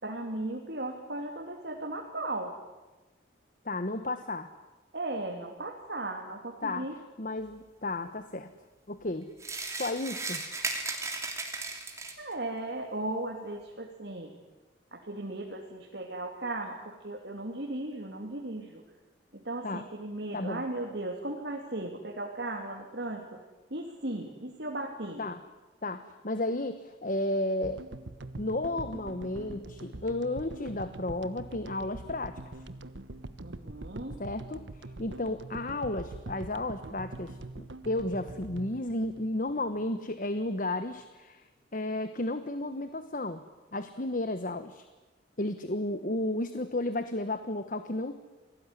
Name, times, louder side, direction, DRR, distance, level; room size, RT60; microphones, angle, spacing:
voice 1, 0.0-2.5 4.9-6.9 12.2-14.3 14.9-18.8 19.3-23.4 23.7-25.2 33.4-34.2, right 2 dB, 65° right, 0 dB, 2.9 m, -36 dB
voice 2, 3.6-4.5 6.6-6.9 7.2-8.5 8.9-9.3 9.7-10.4 19.6-19.8 20.3-20.6 25.2-25.4 25.8-27.8 28.4-32.4 34.2-43.4 43.7-44.9 45.4-48.2, left 2 dB, 45° left, 10 dB, 1.2 m, -33 dB
sound 1, 9.4-12.3, right 3 dB, 15° right, 3.2 m, -35 dB
sound 2, 27.6-40.0, right 2 dB, 85° right, 1.2 m, -43 dB
28.0 x 18.5 x 9.9 m, 1.2 s
head